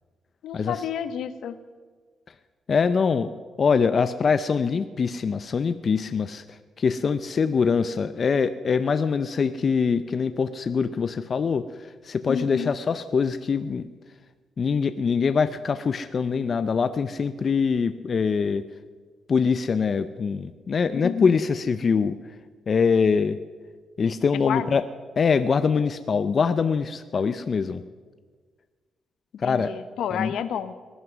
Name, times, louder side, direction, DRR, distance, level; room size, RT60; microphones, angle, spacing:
voice 1, 0.4-1.6 12.2-12.7 20.9-21.3 24.4-24.8 27.1-27.2 29.4-30.7, left 8 dB, 75° left, 12 dB, 0.9 m, -30 dB
voice 2, 2.7-3.3 3.6-6.4 6.8-11.6 12.0-13.9 14.6-18.6 19.3-22.2 22.7-23.4 24.0-24.8 25.2-27.8 29.4-29.7 30.1-30.3, left 5 dB, 40° left, 11 dB, 0.5 m, -23 dB
19.0 x 11.0 x 6.1 m, 1.5 s
cardioid pair, 145°, 0 cm